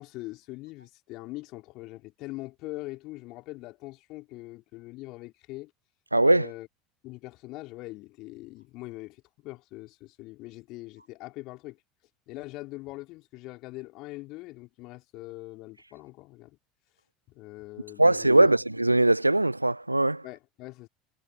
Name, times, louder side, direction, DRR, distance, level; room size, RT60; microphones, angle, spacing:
voice 1, 0.0-5.7 6.3-6.7 7.0-11.8 12.3-16.6 17.3-18.6 20.2-20.9, left 20 dB, 50° left, 3.8 m, -42 dB
voice 2, 6.1-6.5 18.0-20.2, right 2 dB, 85° right, 0.8 m, -21 dB
figure-of-eight pair, 70°, 0 cm